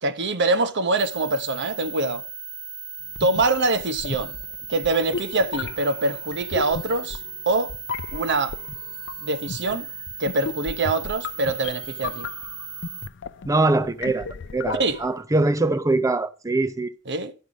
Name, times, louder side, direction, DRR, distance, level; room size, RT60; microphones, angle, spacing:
voice 1, 0.0-2.2 3.2-4.4 4.7-7.2 7.5-7.7 8.1-8.6 9.2-9.9 10.2-12.3 14.8-15.0 17.1-17.3, right 2 dB, 55° right, 0.9 m, -24 dB
sound 1, 1.0-13.1, right 6 dB, 75° right, 1.3 m, -37 dB
sound 2, 3.1-15.2, left 5 dB, 60° left, 0.5 m, -36 dB
voice 2, 13.5-14.3 14.5-16.9, right 2 dB, 15° right, 0.5 m, -22 dB
11.5 x 5.6 x 4.9 m
head